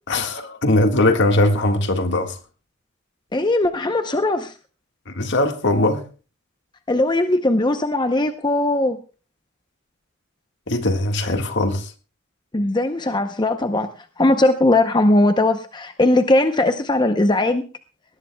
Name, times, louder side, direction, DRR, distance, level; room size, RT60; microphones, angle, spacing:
voice 1, 0.1-2.4 5.1-6.1 10.7-11.9, left 2 dB, 55° left, 1.7 m, -20 dB
voice 2, 3.3-4.5 6.9-9.0 12.5-13.9 14.2-17.6, left 2 dB, 20° left, 0.7 m, -19 dB
20.0 x 18.0 x 2.3 m
head